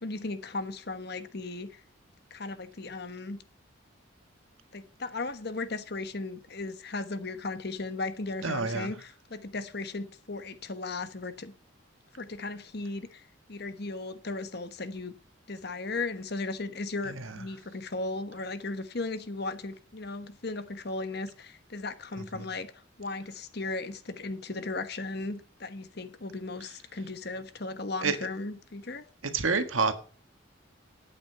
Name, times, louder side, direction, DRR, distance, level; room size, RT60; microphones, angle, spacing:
voice 1, 0.0-1.8 2.3-3.4 4.7-11.5 12.1-15.1 15.5-22.7 23.0-29.0, left 3 dB, 55° left, 1.2 m, -36 dB
voice 2, 8.4-8.9 17.1-17.3 28.0-28.1 29.3-29.9, right 4 dB, 85° right, 1.6 m, -27 dB
11.0 x 8.9 x 5.7 m
head